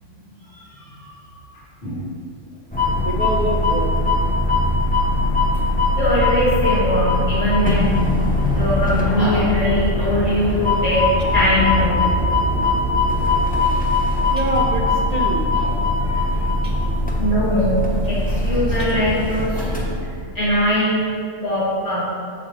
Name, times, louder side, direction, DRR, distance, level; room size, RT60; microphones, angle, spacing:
voice 1, 0.5-1.2 1.8-2.0 6.0-8.2 8.5-12.0 15.5-15.7 16.2-16.5 17.2-20.1 20.3-21.0 21.4-22.1, equal, 60° left, -13 dB, 2.3 m, -21 dB
sound 1, 2.7-20.2, left 2 dB, 10° left, 0.7 m, -20 dB
voice 2, 3.0-3.9 14.3-15.5 15.9-16.3 16.6-16.9 18.8-18.9, right 2 dB, 50° right, -1 dB, 0.5 m, -26 dB
7.8 x 6.6 x 3.1 m, 2.2 s
omnidirectional pair, 1.4 m